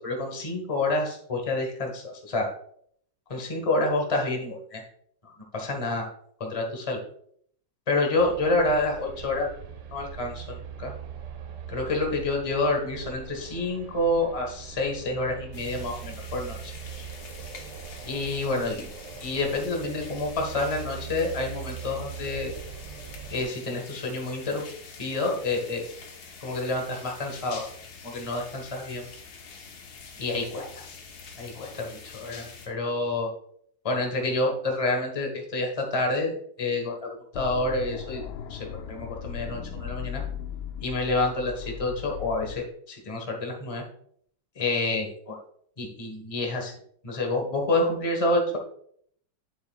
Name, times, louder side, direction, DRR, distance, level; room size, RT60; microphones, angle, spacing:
voice 1, 0.0-2.5 3.3-4.8 5.2-6.1 6.4-7.0 7.9-9.5 9.9-10.9 11.7-16.7 18.0-18.9 19.2-22.5 23.3-24.7 25.0-25.8 26.4-27.7 28.0-29.1 30.2-30.8 31.4-33.3 33.8-36.3 36.6-38.2 38.5-40.2 40.8-43.8 44.5-45.4 45.8-46.7 47.0-48.6, left 2 dB, 20° left, 1 dB, 1.1 m, -28 dB
sound 1, 8.2-23.4, right 7 dB, 80° right, 1.7 m, -41 dB
sound 2, 15.5-32.7, left 5 dB, 55° left, 1.5 m, -46 dB
sound 3, 37.3-42.6, left 8 dB, 75° left, 0.9 m, -37 dB
7.9 x 7.2 x 2.4 m, 0.65 s
omnidirectional pair, 2.3 m